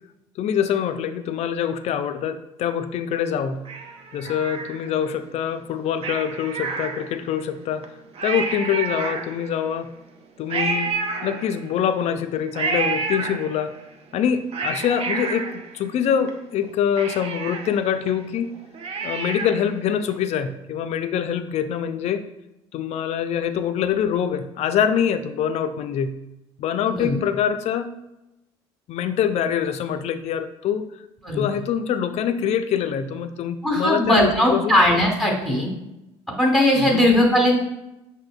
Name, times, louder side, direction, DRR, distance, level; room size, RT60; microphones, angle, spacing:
voice 1, 0.4-3.7 4.1-7.9 8.2-9.9 10.4-11.0 11.2-13.7 14.1-18.6 19.0-22.2 22.7-26.2 26.6-28.0 28.9-30.9 31.3-34.8 36.7-37.0, left 8 dB, 50° left, 9 dB, 0.4 m, -24 dB
Cat, 3.7-5.1 6.0-7.4 7.8-7.9 8.1-9.7 10.5-11.9 12.5-13.8 14.3-16.3 16.6-16.7 17.0-19.8 20.1-20.2, right 4 dB, 45° right, 0.6 m, -29 dB
voice 2, 26.9-27.2 31.2-31.4 33.6-35.7 36.4-37.6, left 1 dB, ahead, -2 dB, 1.2 m, -19 dB
6.1 x 2.7 x 2.3 m, 0.92 s
hypercardioid pair, 60°, 14 cm